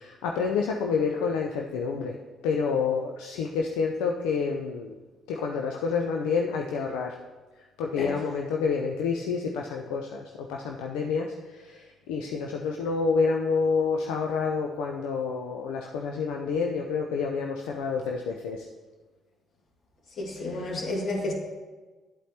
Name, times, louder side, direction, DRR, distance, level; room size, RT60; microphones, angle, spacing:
voice 1, 0.0-2.2 2.4-4.9 5.3-7.2 7.6-18.7 20.5-20.7, left 5 dB, 70° left, 0.5 m, -28 dB
voice 2, 20.1-21.3, left 2 dB, 50° left, 2.0 m, -31 dB
11.5 x 8.2 x 2.9 m
figure-of-eight pair, 45°, 0 cm